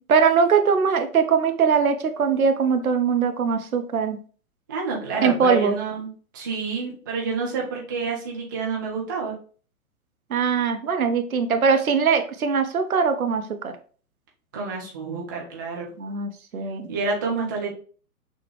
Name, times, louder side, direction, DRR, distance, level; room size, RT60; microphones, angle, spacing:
voice 1, 0.1-4.2 5.2-5.7 10.3-13.7 16.0-16.9, right 6 dB, 70° right, 7 dB, 0.7 m, -21 dB
voice 2, 4.7-9.3 14.5-15.9 16.9-17.7, right 4 dB, 15° right, -3 dB, 0.3 m, -28 dB
6.1 x 2.2 x 3.1 m, 0.41 s
figure-of-eight pair, 110°, 44 cm